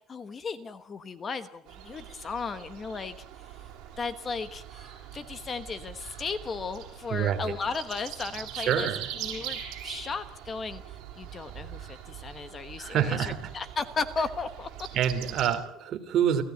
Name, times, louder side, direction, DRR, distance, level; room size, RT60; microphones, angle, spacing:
voice 1, 0.1-3.2 4.0-8.9 9.2-14.7, left 4 dB, 25° left, 12 dB, 1.1 m, -35 dB
sound 1, 1.7-15.5, right 10 dB, 55° right, 6.4 m, -42 dB
voice 2, 7.1-7.6 8.5-9.0 12.8-13.4 14.9-16.4, right 9 dB, 40° right, 6 dB, 3.1 m, -27 dB
30.0 x 16.0 x 9.4 m, 0.77 s
cardioid pair, 170°, 0 cm